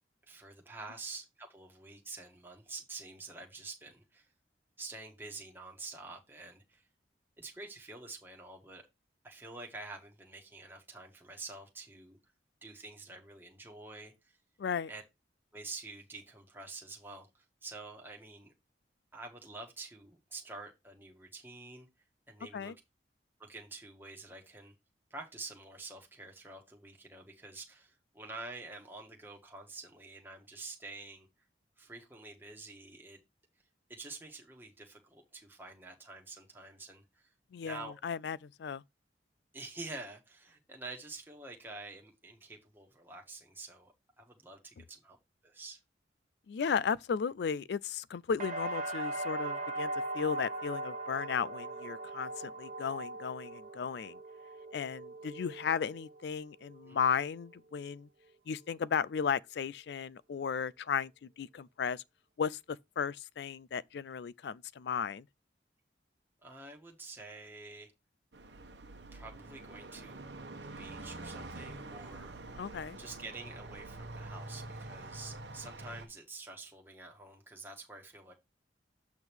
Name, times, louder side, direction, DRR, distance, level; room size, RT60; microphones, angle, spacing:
voice 1, 0.3-4.3 4.8-6.9 7.4-8.8 9.2-12.2 12.6-14.4 14.9-15.0 15.5-18.5 19.1-21.9 22.3-22.7 23.4-24.7 25.1-31.3 31.8-33.2 33.9-37.3 37.6-37.9 39.5-45.2 45.4-45.8 56.8-57.0 66.4-67.9 69.1-72.3 73.0-78.3, right 3 dB, 10° right, 1.4 m, -48 dB
voice 2, 14.6-14.9 22.5-22.7 37.5-38.8 46.5-54.2 54.7-58.1 58.5-62.0 62.4-62.6 63.0-65.3 72.6-73.0, left 6 dB, 65° left, 0.3 m, -35 dB
sound 1, 48.4-56.3 56.7-57.3, right 2 dB, 45° right, 1.2 m, -40 dB
sound 2, 68.3-76.1, right 2 dB, 70° right, 1.1 m, -46 dB
7.9 x 3.5 x 4.5 m
head